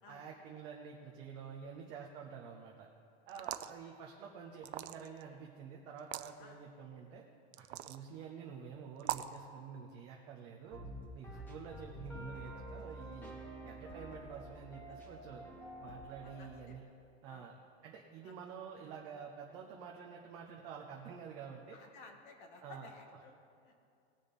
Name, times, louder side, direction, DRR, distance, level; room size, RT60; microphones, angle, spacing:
voice 1, 0.1-2.9 3.3-7.2 7.6-10.8 11.1-13.4 13.6-15.5 15.8-16.8 17.2-17.5 17.8-21.8 22.6-22.9, right 6 dB, 15° right, 0 dB, 0.3 m, -49 dB
sound 1, 3.3-3.8 4.6-5.2 6.0-6.3 7.5-8.0 9.0-9.4, right 13 dB, 85° right, 0.7 m, -40 dB
sound 2, 10.7-16.7, right 1 dB, 5° left, 1.1 m, -48 dB
voice 2, 16.2-16.8 17.2-17.5 18.2-18.3 21.7-23.3 23.6-23.7, left 4 dB, 50° left, 3 dB, 1.8 m, -56 dB
19.0 x 6.6 x 4.1 m, 2.5 s
supercardioid pair, 170°, 32 cm